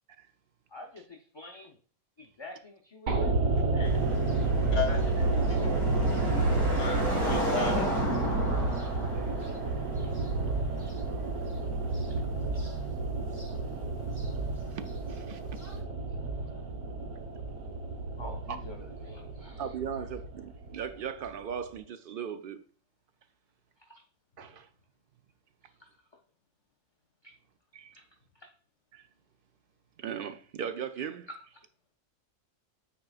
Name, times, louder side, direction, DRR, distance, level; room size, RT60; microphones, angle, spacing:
voice 1, 0.7-1.8 2.2-3.4 9.4-9.5 10.0-10.1 12.1-12.2 12.5-12.6 18.2-19.6 23.9-24.0 25.8-25.9 27.2-27.3 27.9-28.0 28.4-28.5, left 2 dB, 30° left, 0.6 m, -48 dB
sound 1, 3.1-21.3 21.5-21.6, right 3 dB, 85° right, 1.5 m, -30 dB
sound 2, 3.8-12.1 12.4-12.9 13.4-13.5 14.2-14.3 15.6-15.7, equal, 15° right, 1.8 m, -34 dB
voice 2, 6.8-7.9 8.3-8.4, left 5 dB, 65° left, 1.7 m, -35 dB
voice 3, 15.1-15.4 18.5-18.6 19.6-22.6 24.4-24.7 27.7-28.0 28.9-29.1 30.0-31.3, right 7 dB, 60° right, 0.6 m, -38 dB
9.3 x 4.5 x 2.4 m
omnidirectional pair, 1.3 m